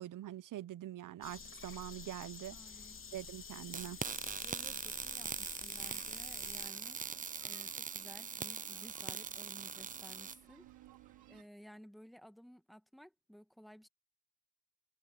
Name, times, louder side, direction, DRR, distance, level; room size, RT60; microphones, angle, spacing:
voice 1, 0.0-2.6 3.1-4.0, right 12 dB, 50° right, 1.1 m, -44 dB
sound 1, 1.2-6.7, left 5 dB, 30° left, 3.8 m, -50 dB
voice 2, 2.5-3.0 4.4-7.0 7.4-10.7 11.3-13.9, equal, ahead, 1.8 m, -56 dB
sound 2, 3.7-10.4, right 6 dB, 20° right, 0.6 m, -42 dB
sound 3, 6.4-11.4, right 15 dB, 70° right, 4.5 m, -62 dB
supercardioid pair, 80°, 40 cm